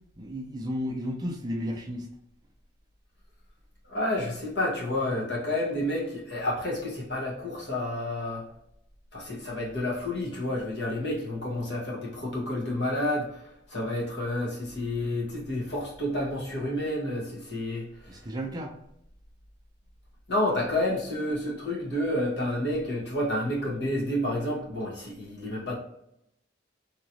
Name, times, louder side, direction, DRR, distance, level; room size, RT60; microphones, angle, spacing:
voice 1, 0.2-2.1 18.1-18.7, equal, 20° right, 1 dB, 0.4 m, -33 dB
voice 2, 3.9-8.4 9.1-13.4 13.7-17.9 20.3-25.7, left 1 dB, 60° left, -4 dB, 1.2 m, -30 dB
2.9 x 2.9 x 2.6 m, 0.77 s
head